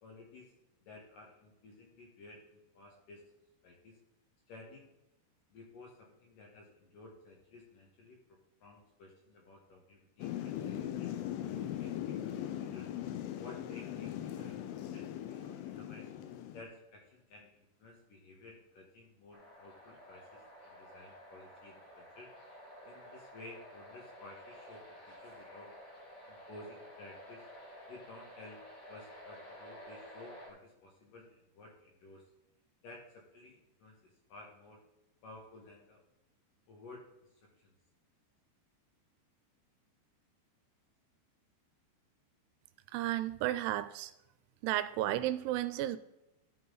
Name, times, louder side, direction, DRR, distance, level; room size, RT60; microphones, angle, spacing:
voice 1, 0.0-0.5 0.8-3.2 3.6-4.0 4.5-4.9 5.5-8.2 8.6-12.9 13.4-16.1 16.5-17.5 17.8-22.3 22.8-25.7 26.2-27.4 27.9-28.6 28.9-31.3 31.5-32.3 32.8-34.8 35.2-36.0 36.7-37.1 37.6-37.7, left 2 dB, 60° left, -1 dB, 2.4 m, -54 dB
Thunder / Rain, 10.2-16.6, left 11 dB, 85° left, 3.3 m, -40 dB
sound 1, 19.3-30.5, equal, 20° left, 2.5 m, -52 dB
voice 2, 42.9-44.1 44.6-46.0, right 14 dB, 85° right, 13 dB, 2.9 m, -33 dB
14.0 x 5.6 x 3.9 m, 0.93 s
omnidirectional pair, 5.5 m